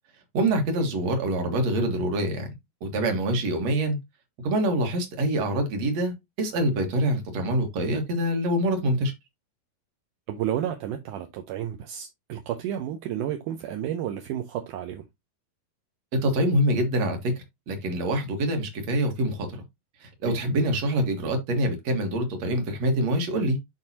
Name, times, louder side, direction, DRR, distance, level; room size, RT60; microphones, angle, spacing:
voice 1, 0.3-2.5 2.8-4.0 4.4-9.1 16.1-17.3 17.7-19.6 20.0-23.6, right 1 dB, 50° right, 2.3 m, -25 dB
voice 2, 10.3-15.0 20.2-20.4, right 10 dB, 75° right, 1.9 m, -31 dB
11.0 x 3.9 x 2.8 m
omnidirectional pair, 4.4 m